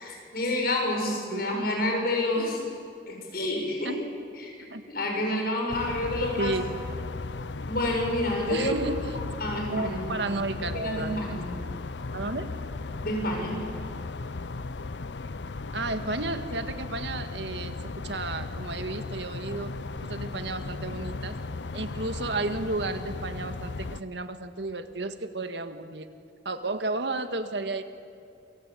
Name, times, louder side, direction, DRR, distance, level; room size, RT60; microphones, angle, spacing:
voice 1, 0.0-2.6 3.1-4.0 4.4-6.6 7.7-8.7 9.4-10.3 10.6-11.5 13.0-13.6, left 1 dB, 55° left, 1 dB, 7.5 m, -29 dB
sound 1, 5.7-24.0, left 3 dB, 80° left, 0.7 m, -36 dB
voice 2, 8.5-9.0 9.7-11.4 12.1-12.5 15.7-17.8 18.0-21.4 21.7-26.1 26.5-27.8, right 2 dB, 75° right, 8 dB, 1.8 m, -32 dB
28.0 x 24.5 x 8.6 m, 2.4 s
head